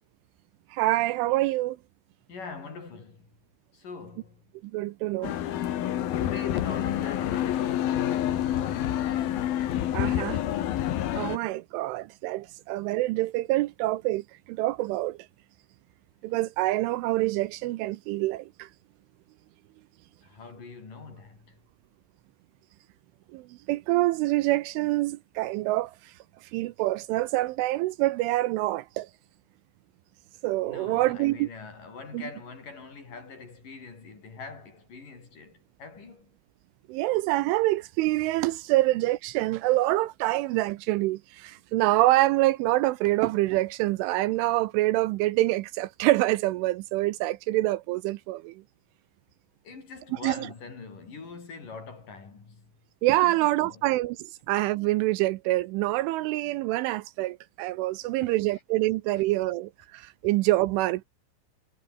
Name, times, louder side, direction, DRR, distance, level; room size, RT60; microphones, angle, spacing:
voice 1, 0.7-1.8 4.7-5.3 9.9-10.4 11.2-15.2 16.2-18.7 23.3-23.4 23.7-25.9 26.5-29.1 30.4-31.5 32.1-32.2 36.9-48.5 50.2-50.5 53.0-61.0, right 18 dB, 80° right, 3.1 m, -26 dB
voice 2, 2.3-3.3 3.7-4.4 6.2-9.5 10.0-10.7 20.2-21.6 30.6-36.3 49.6-52.7 53.2-53.8 58.2-58.4, left 4 dB, 45° left, 6.7 m, -43 dB
sound 1, 5.2-11.4, left 11 dB, 60° left, 2.9 m, -28 dB
omnidirectional pair, 5.7 m